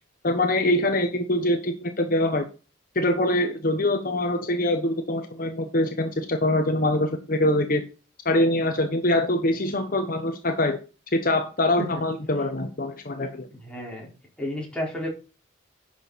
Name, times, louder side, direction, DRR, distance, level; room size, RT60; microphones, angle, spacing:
voice 1, 0.2-2.5 2.9-7.8 8.2-10.8 11.1-13.5, left 1 dB, 50° left, 6 dB, 1.2 m, -24 dB
voice 2, 13.5-14.1 14.4-15.1, left 1 dB, 5° left, -3 dB, 4.8 m, -32 dB
11.0 x 6.5 x 4.2 m, 0.34 s
head